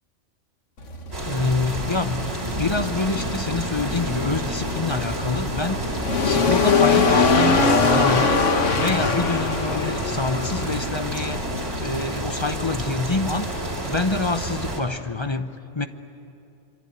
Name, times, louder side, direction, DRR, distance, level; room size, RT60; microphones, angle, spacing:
sound 1, 0.8-15.2, left 4 dB, 75° left, 1.9 m, -24 dB
sound 2, 1.1-14.8, right 1 dB, 55° right, 3.9 m, -30 dB
voice 1, 1.2-8.4 8.7-11.4 11.8-15.9, left 3 dB, 25° left, 8 dB, 0.8 m, -27 dB
26.5 x 23.5 x 9.1 m, 2.7 s
omnidirectional pair, 1.3 m